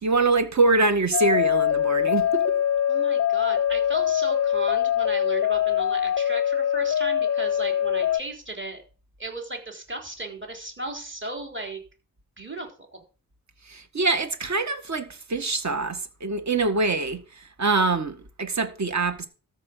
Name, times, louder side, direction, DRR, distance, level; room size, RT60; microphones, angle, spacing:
voice 1, 0.0-2.6 13.7-19.3, right 3 dB, 55° right, 1.9 m, -24 dB
sound 1, 1.1-8.2, left 10 dB, 45° left, 0.5 m, -23 dB
voice 2, 2.9-8.8 9.2-11.8 12.4-13.0, right 2 dB, 35° right, 3.9 m, -36 dB
13.5 x 5.3 x 8.0 m
wide cardioid pair, 90°, 35 cm